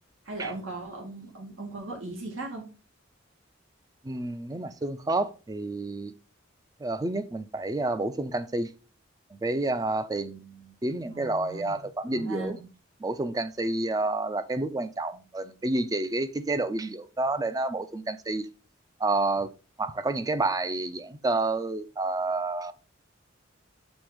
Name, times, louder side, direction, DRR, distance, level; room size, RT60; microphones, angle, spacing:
voice 1, 0.2-2.6 11.1-12.5, right 2 dB, 80° right, 1.7 m, -38 dB
voice 2, 4.0-6.1 6.8-8.7 9.4-12.6 13.0-18.5 19.0-19.5 19.8-22.7, right 2 dB, 20° right, 0.4 m, -29 dB
6.2 x 3.4 x 4.9 m
head